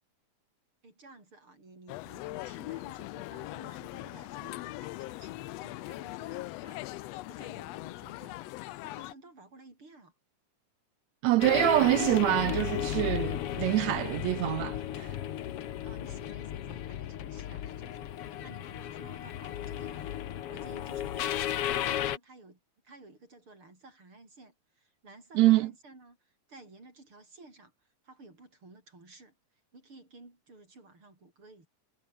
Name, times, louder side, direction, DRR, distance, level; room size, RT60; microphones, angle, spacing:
voice 1, 0.8-10.1 15.8-22.6 22.8-27.7 28.0-29.4 29.7-31.7, right 2 dB, 40° right, 8.1 m, -54 dB
sound 1, 1.9-9.1, left 19 dB, 85° left, 1.4 m, -41 dB
voice 2, 11.2-15.1 25.4-25.7, right 17 dB, 80° right, 1.7 m, -25 dB
sound 2, 11.4-22.2, left 11 dB, 60° left, 1.8 m, -34 dB
omnidirectional pair, 3.5 m